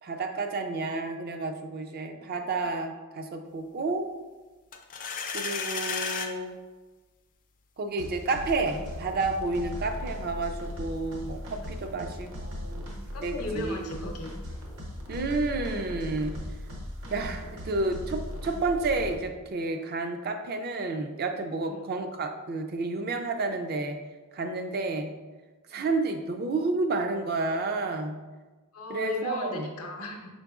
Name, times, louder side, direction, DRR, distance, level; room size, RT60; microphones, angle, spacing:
voice 1, 0.0-4.1 5.3-6.6 7.8-12.8 13.2-13.9 15.1-16.3 17.1-24.0 24.3-25.1 25.7-28.2 28.9-29.7, right 3 dB, 45° right, 6 dB, 0.4 m, -30 dB
sound 1, 4.7-6.3, left 6 dB, 35° left, 0.3 m, -32 dB
sound 2, 8.0-19.1, equal, 60° right, 0.8 m, -38 dB
voice 2, 11.9-12.3 13.1-14.3 21.6-21.9 25.7-25.9 28.7-30.3, left 1 dB, 70° left, 1 dB, 0.6 m, -37 dB
5.2 x 3.9 x 2.4 m, 1.3 s
head